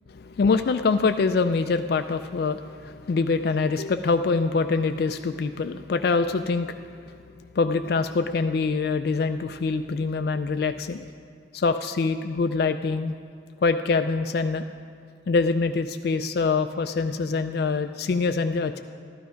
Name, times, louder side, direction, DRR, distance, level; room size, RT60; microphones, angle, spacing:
voice 1, 0.1-7.2 7.5-11.0 11.5-13.1 13.6-14.7 15.3-18.8, left 4 dB, 55° left, 8 dB, 0.3 m, -24 dB
13.0 x 12.0 x 5.1 m, 2.3 s
head